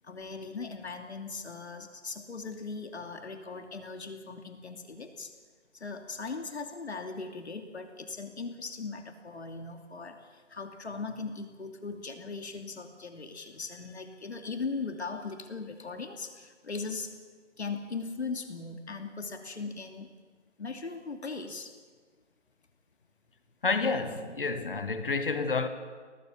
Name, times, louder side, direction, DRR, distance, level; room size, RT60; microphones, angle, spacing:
voice 1, 0.0-5.3 5.7-17.1 17.6-20.1 20.6-21.7, left 4 dB, 60° left, 2.7 m, -39 dB
voice 2, 23.6-25.7, left 4 dB, 45° left, 1.8 m, -29 dB
22.0 x 19.0 x 7.3 m
hypercardioid pair, 175°, 36 cm